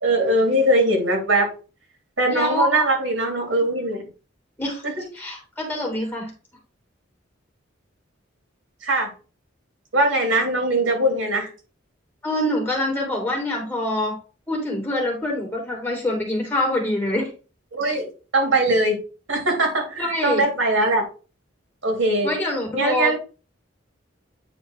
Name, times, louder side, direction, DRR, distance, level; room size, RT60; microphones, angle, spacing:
voice 1, 0.0-1.5 2.2-4.0 4.8-5.0 8.8-9.1 9.9-11.5 17.7-19.0 19.3-21.0 21.8-22.3 22.7-23.1, right 1 dB, 75° right, 1 dB, 3.4 m, -21 dB
voice 2, 2.3-2.9 4.6-4.8 5.1-6.3 12.2-14.2 14.5-17.3 20.0-20.4 22.2-23.1, left 1 dB, 10° left, -1 dB, 2.5 m, -25 dB
9.3 x 3.8 x 4.6 m, 0.35 s
head